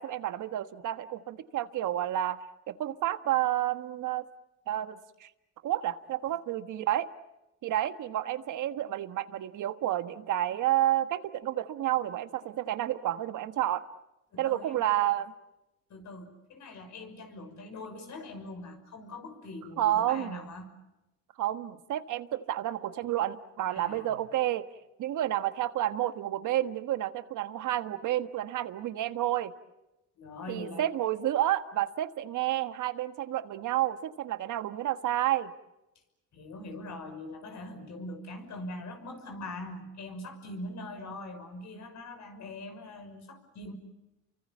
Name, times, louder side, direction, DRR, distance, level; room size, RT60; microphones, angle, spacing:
voice 1, 0.0-4.3 4.7-5.3 5.6-7.1 7.6-13.8 14.4-15.3 19.8-20.4 21.4-24.7 25.0-29.5 30.5-35.5, right 13 dB, 80° right, 10 dB, 1.4 m, -30 dB
voice 2, 14.3-14.8 15.9-20.7 23.7-24.3 30.2-30.9 36.3-43.7, left 2 dB, 65° left, 6 dB, 6.1 m, -42 dB
30.0 x 24.0 x 7.3 m, 0.97 s
cardioid pair, 90°, 30 cm